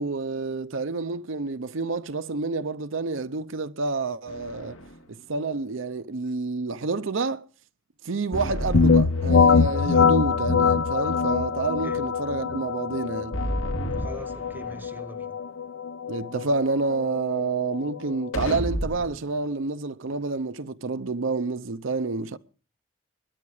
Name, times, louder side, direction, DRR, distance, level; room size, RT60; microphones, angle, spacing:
voice 1, 0.0-4.8 5.1-7.4 8.0-13.4 16.1-22.4, right 3 dB, 70° right, 0.7 m, -29 dB
sound 1, 4.3-5.0 8.3-10.0 13.3-15.0 18.3-19.2, equal, 85° left, 2.1 m, -32 dB
sound 2, 8.7-18.3, left 5 dB, 60° left, 0.6 m, -23 dB
voice 2, 14.0-15.3, right 1 dB, 10° right, 0.8 m, -42 dB
22.0 x 9.9 x 4.9 m
head